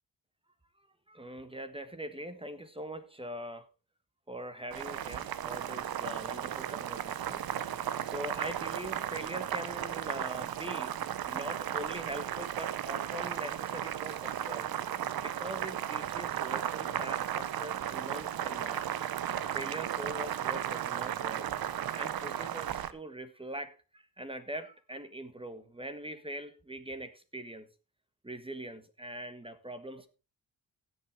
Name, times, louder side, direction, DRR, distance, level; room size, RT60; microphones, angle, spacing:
voice 1, 1.1-3.7 4.3-14.7 15.2-18.8 19.5-21.5 21.9-27.7 28.2-30.1, right 1 dB, 15° right, 10 dB, 1.5 m, -42 dB
Boiling, 4.7-22.9, right 10 dB, 75° right, 0.9 m, -35 dB
16.5 x 6.2 x 4.5 m, 0.31 s
cardioid pair, 75°, 36 cm